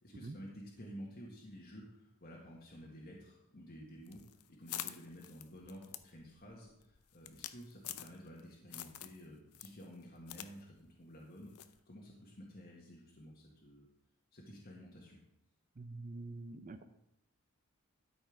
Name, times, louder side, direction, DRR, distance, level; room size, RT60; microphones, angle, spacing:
voice 1, 0.0-4.2 4.5-13.9 14.3-15.2, equal, 45° left, -3 dB, 1.6 m, -52 dB
sound 1, 4.1-8.4 8.7-9.2 9.5-10.5 10.8-10.9 11.6-11.8, left 12 dB, 85° left, 0.6 m, -46 dB
voice 2, 15.8-16.8, right 2 dB, 35° right, 8 dB, 0.5 m, -46 dB
12.5 x 5.3 x 5.0 m, 0.81 s
head